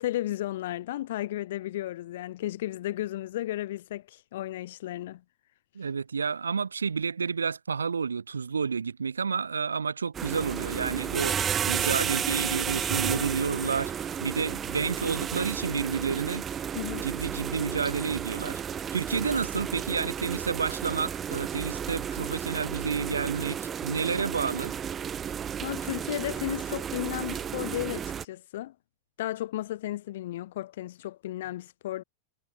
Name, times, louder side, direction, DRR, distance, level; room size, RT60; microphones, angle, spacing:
voice 1, 0.0-5.2 16.7-17.1 25.6-28.7 29.2-32.0, left 14 dB, 55° left, 0.4 m, -34 dB
voice 2, 5.7-11.4 11.7-16.5 17.0-18.6 18.9-24.8, right 5 dB, 75° right, 0.4 m, -30 dB
sound 1, 10.1-28.2, right 8 dB, 25° right, 1.7 m, -32 dB
figure-of-eight pair, 90°, 0 cm